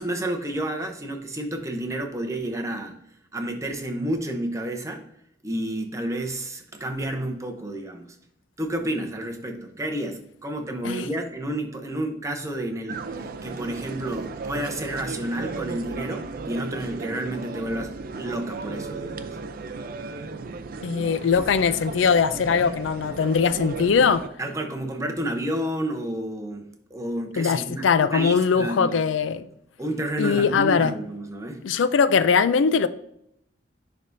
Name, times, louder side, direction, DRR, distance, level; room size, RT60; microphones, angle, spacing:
voice 1, 0.0-3.0 3.3-5.0 5.4-8.1 8.6-19.4 24.4-29.0 29.8-31.6, right 1 dB, 15° right, 0.7 m, -30 dB
sound 1, 12.9-24.3, right 4 dB, 50° right, 0.4 m, -35 dB
voice 2, 20.8-24.2 27.4-29.4 30.2-30.9 31.6-32.9, left 6 dB, 90° left, 0.4 m, -21 dB
10.5 x 3.5 x 2.6 m
head